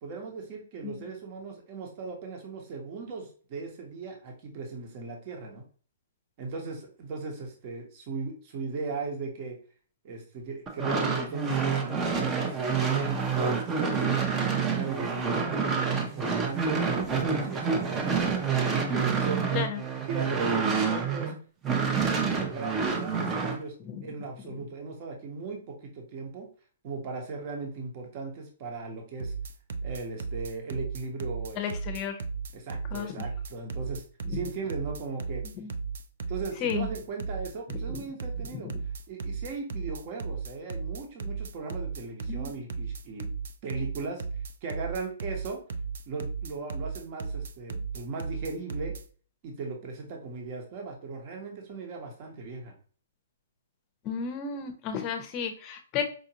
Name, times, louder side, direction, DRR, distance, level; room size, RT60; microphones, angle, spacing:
voice 1, 0.0-5.6 6.4-9.6 10.0-12.6 13.0-18.1 18.7-19.5 20.1-21.3 21.6-23.7 24.0-26.5 26.8-29.3 29.8-31.6 32.5-34.0 34.3-35.4 36.3-38.7 39.1-43.3 43.6-44.2 44.6-45.6 46.1-48.9 49.4-52.7, right 4 dB, 40° right, 2 dB, 1.0 m, -37 dB
sound 1, 10.7-21.3 21.6-23.6, right 5 dB, 20° right, 0.6 m, -28 dB
voice 2, 23.8-24.1 24.6-24.7 31.6-32.2 32.9-33.2 34.3-34.4 35.6-35.7 36.6-36.9 37.7-38.0 38.5-38.8 42.3-42.5 54.0-56.0, left 7 dB, 30° left, 6 dB, 0.6 m, -33 dB
sound 2, 29.2-49.0, right 5 dB, 70° right, 0.4 m, -35 dB
4.9 x 2.5 x 2.8 m, 0.42 s
hypercardioid pair, 145°, 0 cm